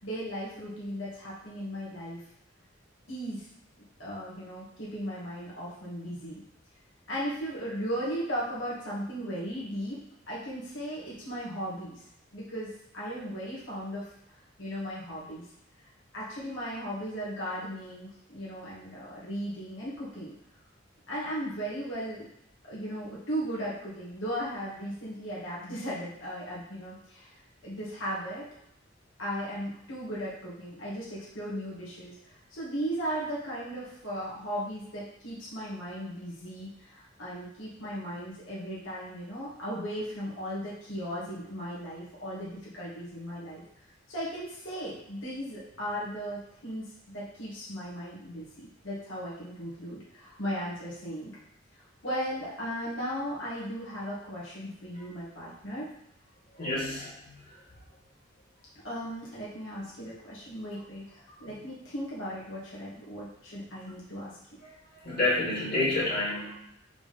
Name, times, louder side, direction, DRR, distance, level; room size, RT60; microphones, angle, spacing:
voice 1, 0.0-2.2 3.1-3.5 4.0-6.4 7.1-12.0 12.3-14.1 14.6-15.4 16.1-20.3 21.1-22.3 22.6-27.3 27.6-28.5 29.2-43.6 44.1-51.3 52.0-55.9 58.8-64.3, equal, 75° left, -8 dB, 2.0 m, -36 dB
voice 2, 56.6-57.1 65.0-66.5, left 2 dB, 50° left, -6 dB, 2.5 m, -28 dB
5.0 x 3.8 x 5.3 m, 0.78 s
head